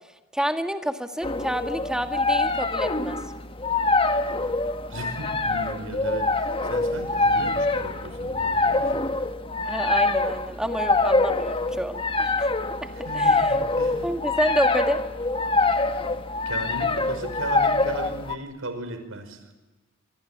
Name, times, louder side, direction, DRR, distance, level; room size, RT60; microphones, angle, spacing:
voice 1, 0.3-3.2 9.7-12.5 13.1-13.5 14.0-15.0, equal, 5° right, 6 dB, 1.9 m, -28 dB
sound 1, 1.2-18.3, left 2 dB, 25° left, 1.3 m, -25 dB
voice 2, 4.9-8.9 13.0-14.1 16.5-19.4, right 1 dB, 85° right, 9 dB, 5.4 m, -36 dB
26.5 x 25.5 x 8.6 m, 1.2 s
head